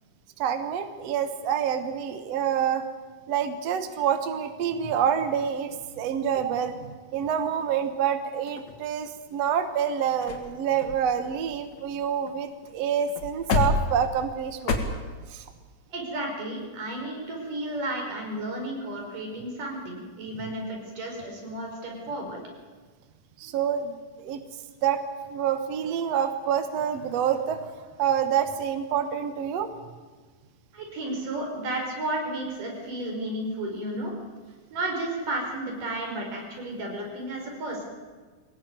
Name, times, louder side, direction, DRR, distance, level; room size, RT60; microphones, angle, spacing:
voice 1, 0.4-2.8 3.3-14.8 15.3-15.4 23.4-24.0 24.2-24.4 24.8-25.0 25.3-27.7 28.0-29.7, right 8 dB, 60° right, 9 dB, 2.1 m, -27 dB
sound 1, 8.5-9.3 9.9-10.0 10.2-10.5 10.8-12.4 12.6-12.8 13.1-14.8, left 4 dB, 60° left, 3.8 m, -30 dB
voice 2, 15.9-22.4 30.7-34.1 34.7-37.8, right 1 dB, 85° right, 1 dB, 6.5 m, -33 dB
23.0 x 18.0 x 9.4 m, 1.4 s
omnidirectional pair, 3.6 m